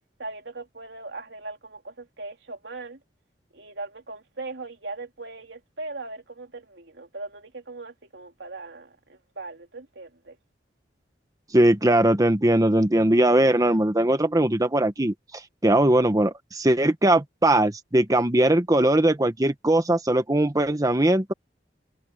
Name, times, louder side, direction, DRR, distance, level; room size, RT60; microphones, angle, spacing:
voice 1, 0.2-3.0 3.5-10.4, right 3 dB, 85° right, 3.4 m, -39 dB
voice 2, 11.5-21.3, right 1 dB, 20° right, 1.1 m, -20 dB
open air
head